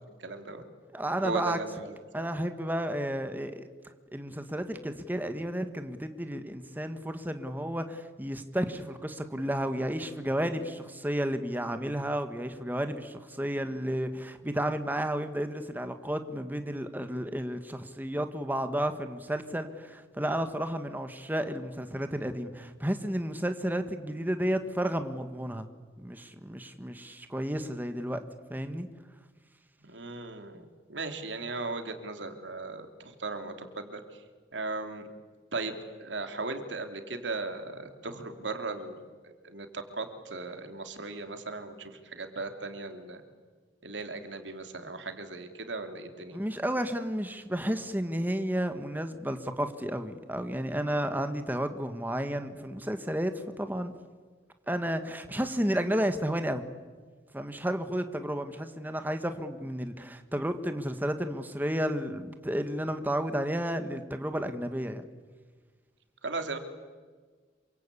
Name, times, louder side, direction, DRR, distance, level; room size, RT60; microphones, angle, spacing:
voice 1, 0.2-0.6 1.2-2.3 29.8-34.2 34.5-35.1 35.5-43.2 43.8-46.4 66.2-66.6, right 3 dB, 85° right, 6 dB, 3.1 m, -37 dB
voice 2, 0.9-1.6 2.1-3.7 4.1-25.7 26.0-28.2 28.5-28.9 46.3-53.9 54.7-56.6 57.3-65.0, equal, 10° right, 8 dB, 1.5 m, -32 dB
27.5 x 25.0 x 8.4 m, 1.5 s
head